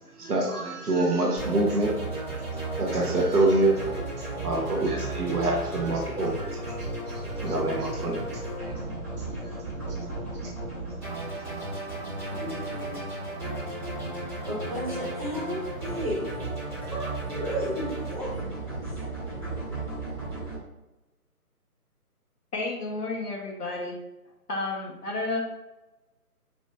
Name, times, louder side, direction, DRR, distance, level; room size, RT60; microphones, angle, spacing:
voice 1, 0.0-1.9 2.2-2.4 2.8-4.0 4.3-9.0 9.3-9.6 9.9-10.1 10.4-10.5, right 2 dB, 75° right, 0 dB, 1.4 m, -27 dB
sound 1, 1.4-20.6, right 2 dB, 5° right, 1.4 m, -34 dB
voice 2, 12.3-13.0 14.5-16.4 16.8-18.4, equal, 25° right, -7 dB, 0.9 m, -34 dB
voice 3, 22.5-24.0 24.5-25.5, left 2 dB, 80° left, -1 dB, 1.4 m, -31 dB
5.0 x 3.1 x 2.6 m, 1.0 s
hypercardioid pair, 175°, 46 cm